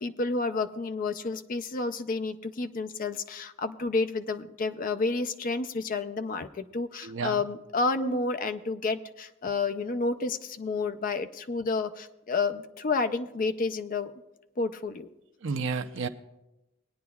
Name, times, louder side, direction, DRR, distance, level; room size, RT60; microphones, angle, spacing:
voice 1, 0.0-14.1 14.6-15.1, left 3 dB, 45° left, 11 dB, 0.5 m, -30 dB
voice 2, 7.0-7.4 8.0-8.2 15.4-16.1, right 4 dB, 65° right, 8 dB, 0.6 m, -31 dB
20.5 x 9.5 x 2.3 m, 0.98 s
head